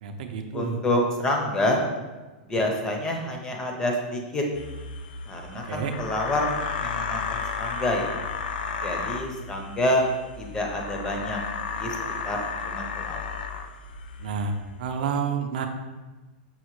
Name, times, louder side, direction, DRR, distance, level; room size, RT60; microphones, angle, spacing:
voice 1, 0.0-0.8 5.5-5.9 14.2-15.7, right 6 dB, 65° right, 6 dB, 0.4 m, -30 dB
voice 2, 0.5-1.8 2.4-4.4 5.3-8.2 8.8-10.1 10.4-11.4 11.8-12.0 12.2-13.4, left 1 dB, 15° left, 1 dB, 0.4 m, -27 dB
sound 1, 4.5-14.7, left 5 dB, 85° left, 0.3 m, -33 dB
5.4 x 2.1 x 3.0 m, 1.2 s
supercardioid pair, 155°, 5 cm